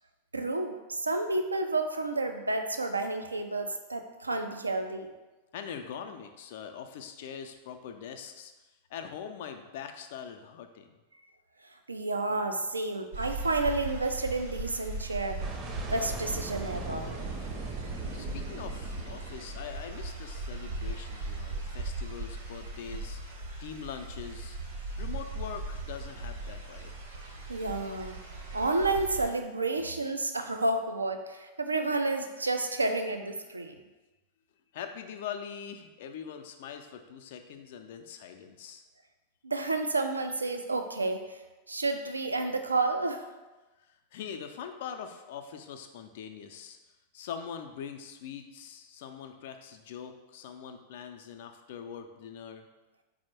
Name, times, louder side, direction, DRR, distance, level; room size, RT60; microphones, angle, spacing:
voice 1, 0.3-5.1 11.9-15.4 15.9-17.1 27.5-28.2 28.5-33.8 39.4-41.4 41.7-43.2, right 2 dB, 80° right, 6 dB, 0.3 m, -30 dB
voice 2, 5.5-8.5 8.9-10.9 18.1-24.6 25.0-26.9 34.7-38.8 43.8-46.8 47.1-52.7, left 7 dB, 55° left, 6 dB, 0.3 m, -43 dB
sound 1, 13.1-29.3, right 2 dB, 60° right, 0.9 m, -38 dB
sound 2, 15.4-20.5, right 4 dB, 35° right, 0.6 m, -40 dB
4.4 x 2.0 x 4.3 m, 1.1 s
figure-of-eight pair, 90°, 0 cm